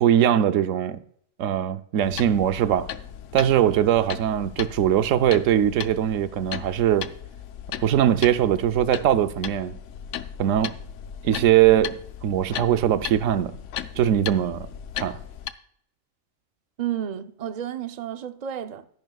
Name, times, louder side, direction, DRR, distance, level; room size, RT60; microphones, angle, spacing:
voice 1, 0.0-1.0 1.4-2.9 3.3-7.1 7.8-9.8 10.4-10.7 11.2-13.5 14.0-14.7 15.0-15.2, right 11 dB, 90° right, 1.0 m, -21 dB
sound 1, 2.0-15.5, left 9 dB, 80° left, 1.0 m, -37 dB
voice 2, 16.8-18.8, right 10 dB, 45° right, 0.6 m, -31 dB
13.0 x 10.5 x 2.3 m
omnidirectional pair, 1.3 m